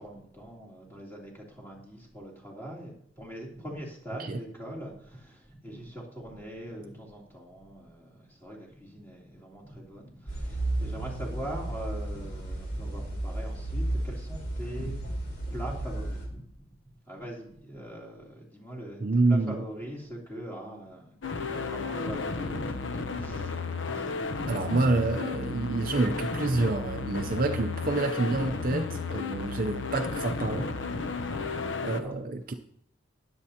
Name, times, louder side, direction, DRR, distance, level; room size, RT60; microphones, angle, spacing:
voice 1, 0.0-19.0 19.3-24.7 27.2-27.4 31.3-32.1, right 1 dB, 10° left, -3 dB, 3.1 m, -42 dB
sound 1, 10.3-16.2, right 1 dB, 50° left, 4.1 m, -33 dB
voice 2, 19.0-19.6 24.5-30.7 31.8-32.5, right 2 dB, 45° right, 6 dB, 0.6 m, -28 dB
sound 2, 21.2-32.0, left 4 dB, 65° left, 0.8 m, -33 dB
20.5 x 8.0 x 2.9 m, 0.65 s
head